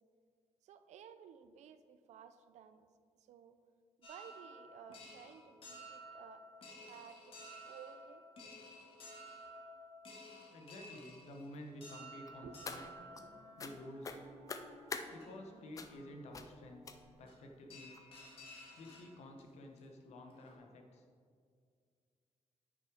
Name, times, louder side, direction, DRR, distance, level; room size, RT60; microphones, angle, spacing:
voice 1, 0.6-2.9 3.2-3.6 4.0-6.4 6.9-8.2 12.4-13.3, right 8 dB, 80° right, 11 dB, 0.5 m, -56 dB
sound 1, 4.0-14.1 14.8-14.9 15.2-15.3 17.3-17.4 17.7-19.4 19.8-19.9 20.2-20.5, equal, 50° left, 1.9 m, -54 dB
voice 2, 10.5-12.8 13.6-14.2 15.1-16.9 17.2-18.0 18.8-21.0, left 1 dB, 70° left, 3 dB, 1.1 m, -51 dB
Wind instrument woodwind instrument, 11.9-17.7, right 2 dB, 55° right, 2.0 m, -62 dB
sound 2, 12.3-13.2 13.6-13.7 14.0-15.1 15.8-16.0 16.3-16.5 16.8-17.3 17.9-18.0 18.5-18.6 18.9-19.0, left 5 dB, 30° left, 0.5 m, -45 dB
9.4 x 6.4 x 4.9 m, 2.1 s
wide cardioid pair, 165°, 12 cm